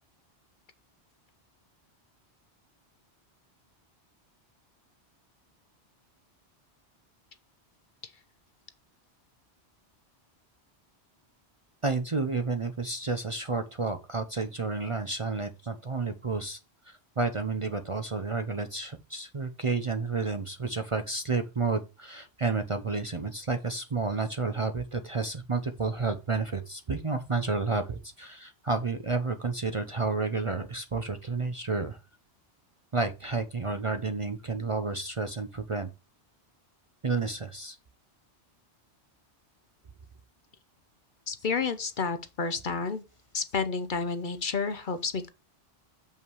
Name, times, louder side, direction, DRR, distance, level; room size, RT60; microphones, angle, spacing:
voice 1, 11.8-16.6 16.8-32.0 32.9-35.9 37.0-37.8, right 4 dB, 35° right, 0.6 m, -31 dB
voice 2, 41.3-43.0 43.3-45.3, left 4 dB, 50° left, 0.8 m, -30 dB
7.1 x 5.5 x 4.7 m
omnidirectional pair, 1.1 m